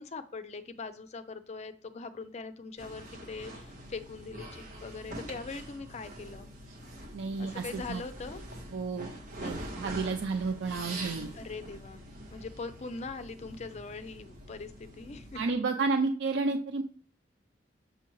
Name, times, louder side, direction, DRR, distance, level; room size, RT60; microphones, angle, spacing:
voice 1, 0.0-6.5 7.4-8.4 11.3-12.0 12.3-15.4, left 4 dB, 40° left, 11 dB, 0.4 m, -41 dB
sound 1, 2.8-15.5, right 1 dB, 45° right, 1.4 m, -44 dB
voice 2, 7.1-8.0 8.7-9.1 9.4-11.3 15.3-16.8, right 4 dB, 80° right, 6 dB, 0.4 m, -31 dB
6.8 x 5.7 x 3.0 m, 0.43 s
head